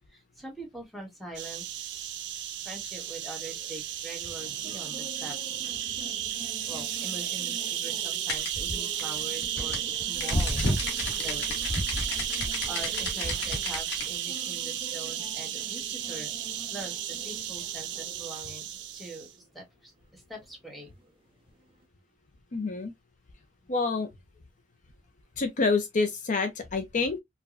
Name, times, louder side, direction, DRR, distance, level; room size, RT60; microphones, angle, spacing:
voice 1, 0.1-1.7 2.6-5.4 6.7-10.6 11.2-11.7 12.7-16.3 16.7-20.9, right 2 dB, ahead, 1.1 m, -43 dB
sound 1, 1.3-19.3, right 11 dB, 80° right, 0.5 m, -34 dB
sound 2, 3.4-21.9, right 1 dB, 30° right, 1.0 m, -49 dB
sound 3, 8.3-14.1, left 1 dB, 70° left, 1.1 m, -31 dB
voice 2, 22.5-22.9 23.7-24.1 25.4-27.2, left 4 dB, 45° left, 0.5 m, -27 dB
4.6 x 2.2 x 2.4 m
head